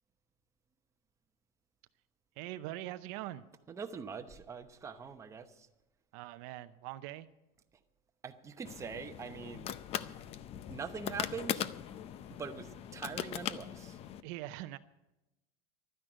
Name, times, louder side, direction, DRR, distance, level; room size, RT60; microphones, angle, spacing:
voice 1, 2.4-3.4 6.1-7.3 14.2-14.8, right 15 dB, 55° right, 12 dB, 0.6 m, -42 dB
voice 2, 3.7-5.7 8.2-9.7 10.7-11.7 12.4-14.0, right 6 dB, 15° right, 6 dB, 0.9 m, -43 dB
sound 1, 8.6-14.2, left 10 dB, 30° left, 0.6 m, -40 dB
12.0 x 10.0 x 9.0 m, 0.97 s
supercardioid pair, 155°, 19 cm